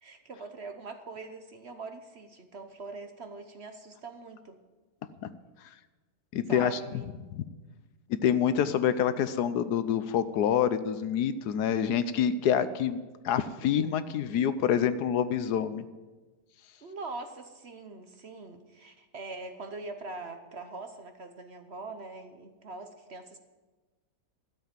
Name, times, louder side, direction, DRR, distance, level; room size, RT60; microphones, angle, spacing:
voice 1, 0.0-4.6 6.5-7.1 16.8-23.4, right 3 dB, 45° right, 7 dB, 1.0 m, -43 dB
voice 2, 6.3-6.8 8.2-13.0 13.2-15.9, left 8 dB, 75° left, 13 dB, 1.2 m, -26 dB
13.0 x 7.7 x 9.0 m, 1.2 s
omnidirectional pair, 1.8 m